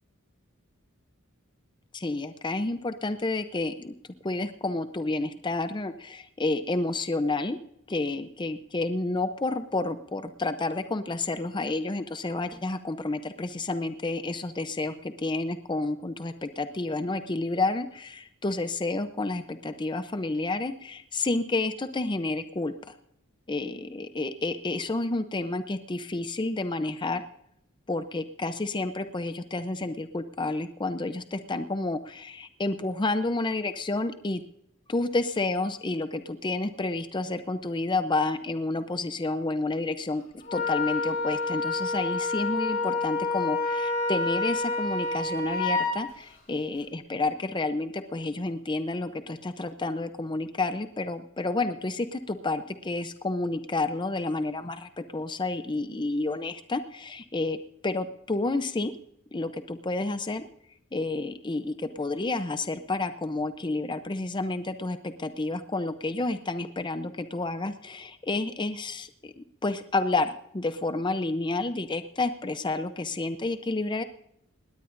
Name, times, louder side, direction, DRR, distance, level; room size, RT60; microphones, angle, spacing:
voice 1, 1.9-3.9 4.2-7.6 7.9-22.9 23.5-27.2 27.9-34.4 34.9-40.2 40.5-58.9 59.3-60.5 60.9-74.0, left 2 dB, 20° left, 10 dB, 0.6 m, -30 dB
Wind instrument woodwind instrument, 40.5-46.0, left 3 dB, 45° left, 4.9 m, -28 dB
20.0 x 17.5 x 2.6 m, 0.74 s
head